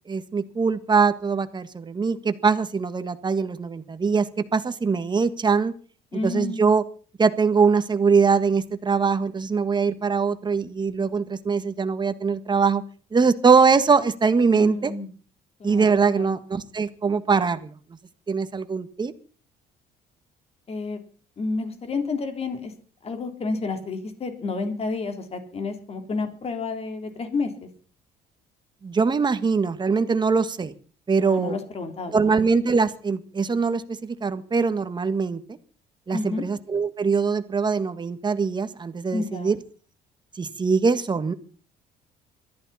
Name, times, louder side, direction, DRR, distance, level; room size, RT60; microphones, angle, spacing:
voice 1, 0.1-5.7 6.2-6.8 7.2-12.8 13.1-14.9 15.6-17.7 18.3-19.1 28.8-30.7 31.1-31.5 32.1-35.4 36.1-39.6 40.3-41.3, right 5 dB, 25° right, 11 dB, 1.6 m, -22 dB
voice 2, 6.1-6.7 14.5-15.1 15.6-16.3 20.7-21.0 21.4-22.7 23.0-27.7 31.2-32.4 36.1-36.4 39.1-39.6, left 3 dB, 35° left, 6 dB, 3.6 m, -30 dB
22.0 x 14.0 x 4.3 m, 0.39 s
cardioid pair, 110°, 17 cm